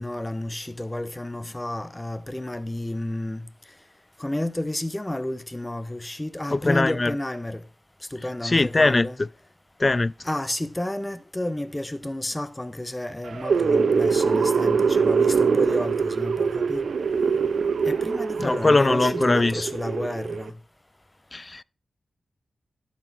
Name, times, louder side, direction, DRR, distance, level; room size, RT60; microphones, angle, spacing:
voice 1, 0.0-3.5 4.2-7.6 8.1-9.2 10.2-16.9 17.8-20.5, left 1 dB, 15° left, 0.8 m, -31 dB
voice 2, 6.5-7.1 8.4-9.3 9.8-10.1 18.4-19.7 21.3-21.6, left 2 dB, 35° left, 0.4 m, -21 dB
sound 1, 13.3-20.5, right 5 dB, 70° right, 0.5 m, -23 dB
12.0 x 4.3 x 6.0 m
supercardioid pair, 45°, 0 cm